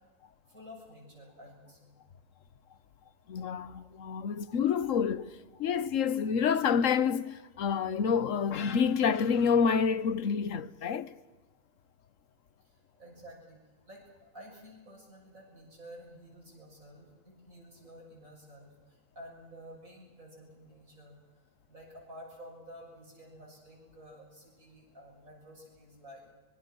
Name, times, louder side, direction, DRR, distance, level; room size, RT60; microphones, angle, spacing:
voice 1, 0.5-1.9 12.6-26.3, equal, 90° right, 7.3 m, -51 dB
voice 2, 3.3-11.1, left 6 dB, 70° left, 1.3 m, -28 dB
24.5 x 23.0 x 6.3 m
omnidirectional pair, 1.4 m